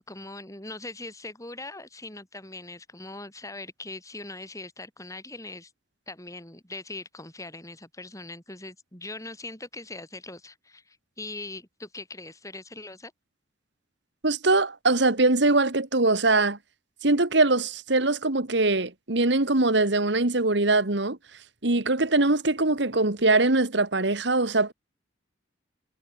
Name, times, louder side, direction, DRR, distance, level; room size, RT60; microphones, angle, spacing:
voice 1, 0.0-5.7 6.1-13.1, left 2 dB, 15° left, 7.9 m, -41 dB
voice 2, 14.2-16.6 17.0-21.2 21.6-24.7, right 2 dB, 65° right, 1.9 m, -22 dB
head